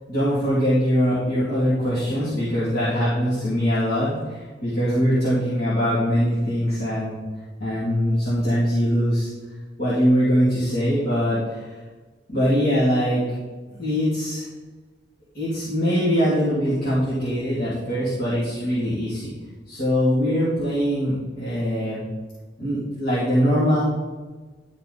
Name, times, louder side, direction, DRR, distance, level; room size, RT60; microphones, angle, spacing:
voice 1, 0.1-7.2 7.6-9.3 9.8-11.7 12.3-13.2 13.7-14.4 15.3-19.3 19.7-22.0 22.6-23.8, equal, 55° left, -10 dB, 2.9 m, -22 dB
11.5 x 4.7 x 4.2 m, 1.3 s
head